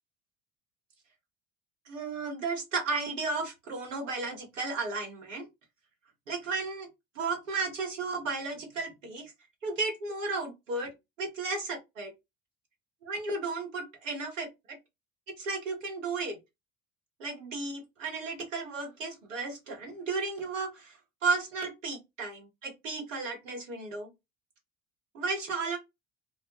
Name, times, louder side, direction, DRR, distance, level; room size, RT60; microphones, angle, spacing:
voice 1, 1.9-5.5 6.3-6.9 7.1-9.3 9.6-10.9 11.2-12.1 13.0-14.8 15.4-16.4 17.2-24.1 25.1-25.8, right 3 dB, 80° right, 0.9 m, -34 dB
2.1 x 2.1 x 2.9 m
figure-of-eight pair, 60°, 37 cm